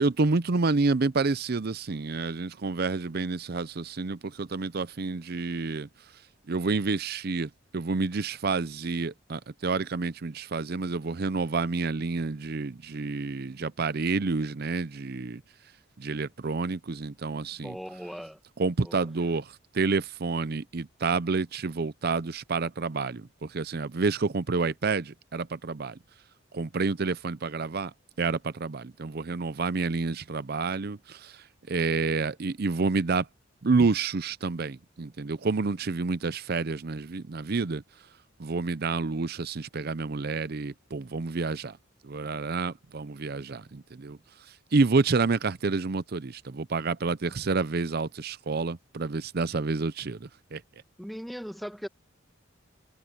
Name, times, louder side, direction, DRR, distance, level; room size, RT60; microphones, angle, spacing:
voice 1, 0.0-5.9 6.5-15.4 16.0-17.8 18.6-26.0 26.5-27.9 28.2-31.4 31.7-33.3 33.6-37.8 38.4-41.8 42.0-44.2 44.7-50.6, right 4 dB, 55° right, 0.6 m, -29 dB
voice 2, 17.6-18.4 18.8-19.1 51.0-51.9, equal, ahead, 1.3 m, -38 dB
head